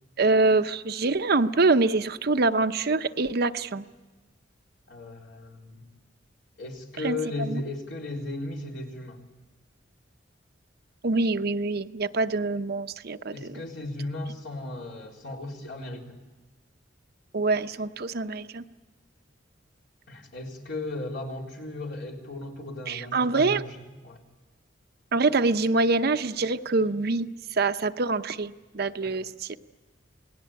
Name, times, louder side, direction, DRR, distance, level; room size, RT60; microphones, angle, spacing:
voice 1, 0.2-3.9 7.0-7.6 11.0-13.6 17.3-18.6 22.9-23.6 25.1-29.6, right 3 dB, 55° right, 9 dB, 0.8 m, -25 dB
voice 2, 4.9-5.8 6.6-9.2 13.3-16.2 20.1-24.2 29.0-29.2, left 2 dB, 65° left, 0 dB, 4.0 m, -36 dB
28.5 x 19.0 x 8.7 m, 1.2 s
head